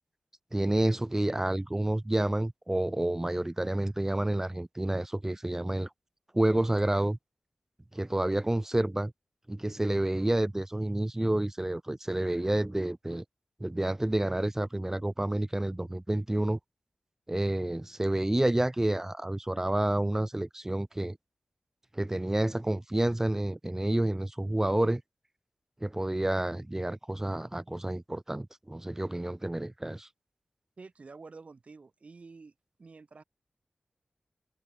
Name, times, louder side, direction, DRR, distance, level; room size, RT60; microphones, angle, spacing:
voice 1, 0.5-5.9 6.3-7.2 7.9-9.1 9.5-13.2 13.6-16.6 17.3-21.2 21.9-25.0 25.8-30.1, right 1 dB, 15° right, 1.2 m, -29 dB
voice 2, 30.8-32.5 32.8-33.2, right 4 dB, 60° right, 6.2 m, -49 dB
wide cardioid pair, 95°, 3 cm